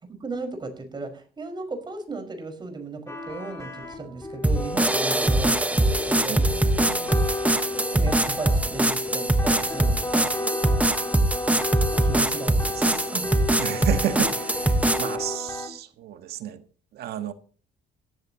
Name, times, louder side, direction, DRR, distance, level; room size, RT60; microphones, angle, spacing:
voice 1, 0.0-6.4 7.9-10.3 12.0-13.3, right 3 dB, 25° right, 5.4 m, -36 dB
sound 1, 3.1-15.7, left 2 dB, 15° left, 5.0 m, -32 dB
sound 2, 4.4-15.2, right 1 dB, 10° right, 1.3 m, -23 dB
voice 2, 6.3-7.3 12.5-13.0 13.6-16.6 16.9-17.3, right 11 dB, 70° right, 1.6 m, -32 dB
17.5 x 14.5 x 3.0 m
cardioid pair, 110°, 17 cm